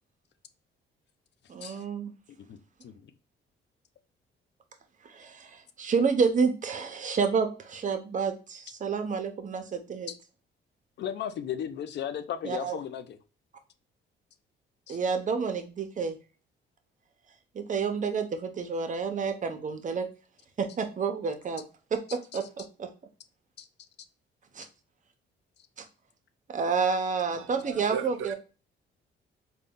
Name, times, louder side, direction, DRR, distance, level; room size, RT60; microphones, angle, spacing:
voice 1, 1.5-2.1 5.0-10.1 12.4-12.8 14.9-16.2 17.5-20.1 20.6-21.6 21.9-22.4 22.8-22.9 24.5-24.7 26.5-28.3, right 5 dB, 40° right, 0.7 m, -29 dB
voice 2, 2.3-2.9 10.1-10.2 11.0-13.2 14.9-15.0 23.6-23.7, left 9 dB, 60° left, 0.5 m, -36 dB
voice 3, 27.3-28.3, right 7 dB, 85° right, 0.5 m, -37 dB
3.9 x 2.3 x 3.5 m
cardioid pair, 90°, 20 cm